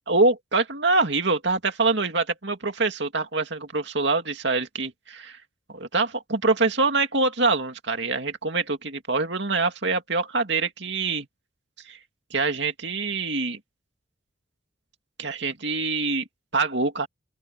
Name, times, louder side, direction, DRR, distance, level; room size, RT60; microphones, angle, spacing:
voice 1, 0.1-5.4 5.7-11.3 11.9-12.0 12.3-13.6 15.2-16.2 16.5-17.1, right 3 dB, 65° right, 2.5 m, -25 dB
open air
head